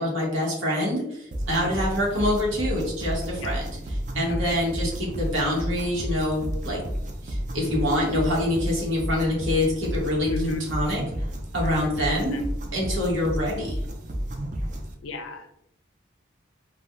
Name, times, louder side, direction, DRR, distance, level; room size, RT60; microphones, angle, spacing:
voice 1, 0.0-3.7 4.1-6.8 7.2-11.0 11.5-12.4 12.7-13.7, left 1 dB, 80° right, -3 dB, 1.2 m, -26 dB
sound 1, 1.3-14.9, equal, 40° right, 0.4 m, -31 dB
voice 2, 10.3-10.6 11.6-12.4 15.0-15.5, left 1 dB, 80° left, 6 dB, 0.5 m, -34 dB
3.3 x 2.2 x 2.6 m, 0.75 s
head